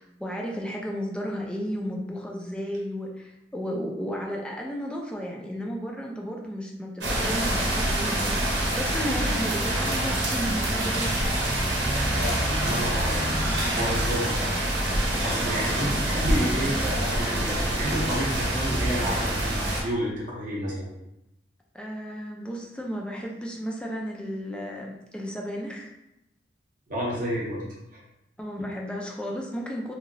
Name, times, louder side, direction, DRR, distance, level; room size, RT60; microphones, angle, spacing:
voice 1, 0.0-11.1 21.7-25.9 28.4-29.9, equal, 5° left, -1 dB, 0.4 m, -33 dB
sound 1, 7.0-19.8, right 1 dB, 80° right, 0.8 m, -26 dB
voice 2, 12.1-14.6 15.2-20.9 26.9-28.0, equal, 50° right, -4 dB, 0.7 m, -31 dB
3.0 x 2.7 x 2.6 m, 0.88 s
head